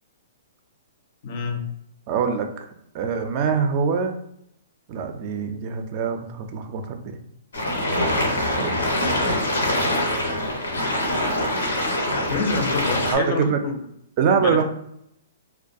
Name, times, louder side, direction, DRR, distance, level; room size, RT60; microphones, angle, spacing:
voice 1, 1.2-1.6 12.2-13.8 14.4-14.6, left 4 dB, 45° left, 4 dB, 0.5 m, -27 dB
voice 2, 2.1-2.7 2.9-4.1 4.9-7.2 8.6-8.7 13.1-13.6 14.2-14.6, right 6 dB, 40° right, 6 dB, 0.3 m, -24 dB
sound 1, 7.5-13.2, left 1 dB, 85° left, 0.7 m, -24 dB
2.2 x 2.2 x 2.6 m, 0.75 s
hypercardioid pair, 135°, 0 cm